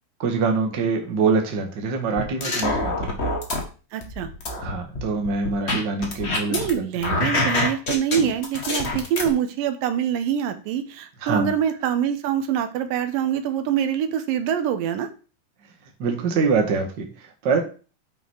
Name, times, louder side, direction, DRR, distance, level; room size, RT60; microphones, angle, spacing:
voice 1, 0.2-3.1 4.6-6.6 7.1-7.4 11.2-11.5 15.6-15.7 16.0-17.6, right 4 dB, 40° right, 2 dB, 1.7 m, -24 dB
sound 1, 2.2-3.6 4.0-6.7 7.0-9.3, left 2 dB, 40° left, 0.9 m, -25 dB
voice 2, 3.9-4.3 6.5-15.1, right 9 dB, 85° right, 8 dB, 2.7 m, -25 dB
9.3 x 6.0 x 4.6 m, 0.36 s
omnidirectional pair, 3.9 m